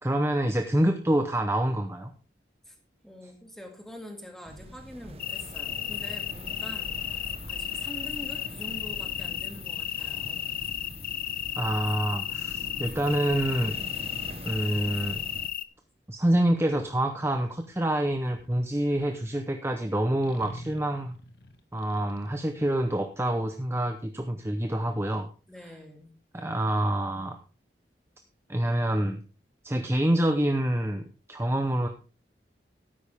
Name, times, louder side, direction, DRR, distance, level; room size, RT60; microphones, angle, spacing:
voice 1, 0.0-2.1 11.6-13.8 14.4-15.2 16.1-21.2 21.7-25.3 26.3-27.4 28.5-29.2 29.6-31.9, right 1 dB, 15° right, 5 dB, 0.8 m, -27 dB
voice 2, 3.0-10.5 25.5-26.1, equal, ahead, 3 dB, 2.3 m, -45 dB
sound 1, 4.4-15.5, right 1 dB, 35° right, 1.1 m, -43 dB
sound 2, 5.2-15.6, left 11 dB, 50° left, 0.6 m, -34 dB
sound 3, 15.1-15.4 16.6-19.3 20.2-23.4, left 1 dB, 70° left, 1.5 m, -49 dB
13.0 x 10.0 x 3.5 m, 0.34 s
head